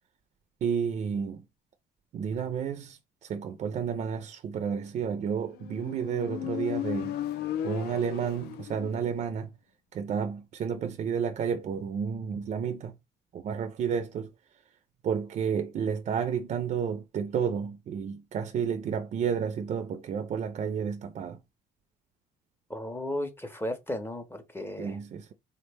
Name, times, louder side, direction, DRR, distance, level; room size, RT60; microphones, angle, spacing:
voice 1, 0.6-1.4 2.1-7.2 7.6-9.5 9.9-12.9 13.3-14.3 15.0-21.4 24.8-25.3, right 7 dB, 45° right, 0.4 m, -31 dB
Motorcycle, 5.6-9.3, left 11 dB, 75° left, 0.4 m, -35 dB
voice 2, 22.7-25.0, left 1 dB, 15° left, 0.5 m, -35 dB
3.5 x 2.1 x 3.2 m
cardioid pair, 110°, 17 cm